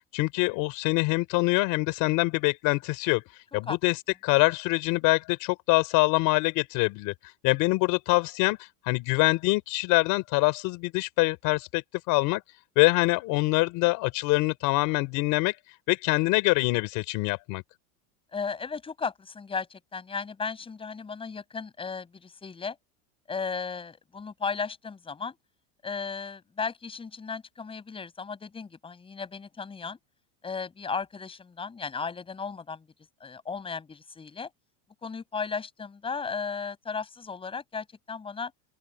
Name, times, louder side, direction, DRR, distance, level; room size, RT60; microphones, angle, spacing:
voice 1, 0.1-3.2 3.5-4.0 4.2-7.1 7.4-12.4 12.8-15.6 15.9-17.6, left 23 dB, 45° left, 4.8 m, -24 dB
voice 2, 18.3-22.8 23.3-25.4 25.8-30.0 30.4-32.9 33.2-34.5 35.0-38.5, left 5 dB, 10° left, 6.6 m, -35 dB
open air
cardioid pair, 175°, 45 cm